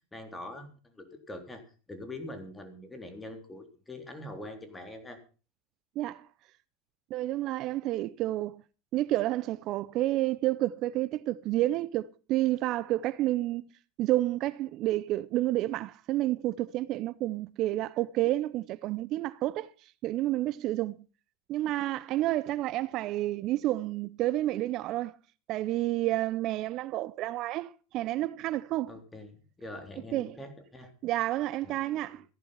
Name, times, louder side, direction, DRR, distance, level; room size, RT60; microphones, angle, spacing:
voice 1, 0.1-1.6 1.9-5.2 28.9-30.9 31.6-32.1, left 1 dB, 10° left, 3.8 m, -44 dB
voice 2, 6.0-6.3 7.1-8.6 8.9-13.6 14.0-19.7 20.0-20.9 21.5-25.1 25.5-28.9 30.1-30.4 31.0-32.2, right 15 dB, 50° right, 0.6 m, -30 dB
15.0 x 11.0 x 5.7 m
hypercardioid pair, 90°, 0 cm